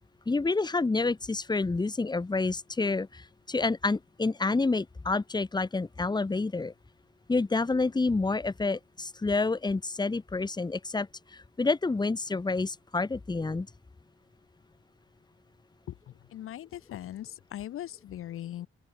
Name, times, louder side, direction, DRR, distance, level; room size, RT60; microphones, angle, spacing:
voice 1, 0.3-6.7 7.3-13.7, left 3 dB, 20° left, 1.1 m, -28 dB
voice 2, 15.9-18.7, left 12 dB, 85° left, 0.9 m, -40 dB
open air
cardioid pair, 85°, 21 cm